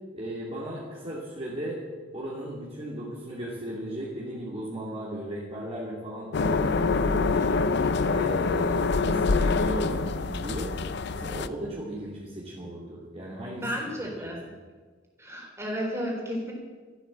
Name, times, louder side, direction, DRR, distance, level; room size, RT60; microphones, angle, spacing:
voice 1, 0.1-1.8 2.1-7.5 8.0-10.8 11.1-13.6 14.2-14.3, right 1 dB, 30° right, -5 dB, 2.9 m, -36 dB
sound 1, 6.3-11.5, left 4 dB, 60° left, 0.6 m, -25 dB
voice 2, 13.6-14.4 15.2-16.5, equal, 15° right, -1 dB, 4.2 m, -32 dB
14.0 x 12.5 x 7.6 m, 1.4 s
head